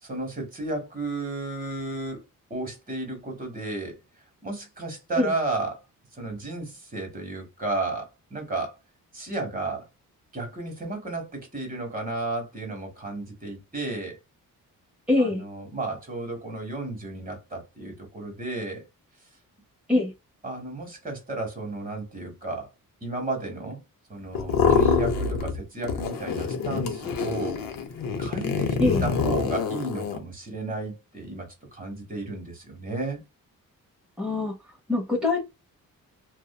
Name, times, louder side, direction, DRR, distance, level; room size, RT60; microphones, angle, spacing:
voice 1, 0.0-2.2 2.5-4.0 4.4-5.8 6.1-8.8 9.1-9.9 10.3-14.2 15.2-18.9 20.4-22.7 23.0-23.8 24.1-27.6 28.2-33.2, right 2 dB, 25° right, 1.2 m, -33 dB
voice 2, 15.1-15.4 19.9-20.1 28.8-29.0 34.2-34.5 34.9-35.4, left 2 dB, 5° right, 0.8 m, -23 dB
sound 1, 24.3-25.6 25.8-30.2, left 5 dB, 70° left, 0.7 m, -26 dB
2.6 x 2.1 x 2.2 m
cardioid pair, 95°, 35 cm